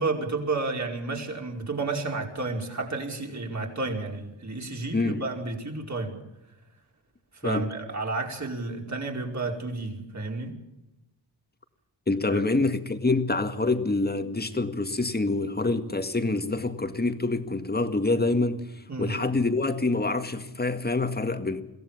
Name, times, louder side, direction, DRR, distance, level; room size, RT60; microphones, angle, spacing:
voice 1, 0.0-6.1 7.4-10.5 12.3-12.4 18.9-19.1, right 3 dB, 40° right, 5.0 m, -31 dB
voice 2, 12.1-18.6 19.0-21.6, left 3 dB, 20° left, 2.0 m, -26 dB
23.0 x 16.5 x 7.4 m
cardioid pair, 85°, 44 cm